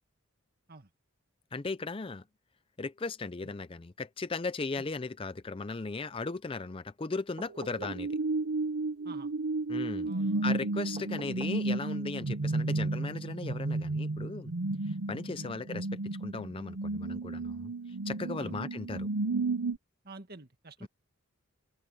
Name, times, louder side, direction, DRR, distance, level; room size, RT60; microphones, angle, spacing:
voice 1, 1.5-2.2 2.8-8.1 9.7-10.1 10.4-14.5 14.9-17.7 18.1-19.1 20.8-20.9, left 3 dB, 25° left, 0.4 m, -37 dB
sound 1, 7.4-8.1 11.0-11.7 13.3-13.4, right 2 dB, 30° right, 2.6 m, -48 dB
sound 2, 7.5-19.8, right 2 dB, 75° right, 0.8 m, -33 dB
voice 2, 10.0-10.5 10.9-11.1 15.3-15.5 18.4-18.6 20.0-20.9, right 2 dB, 45° right, 2.0 m, -48 dB
open air
head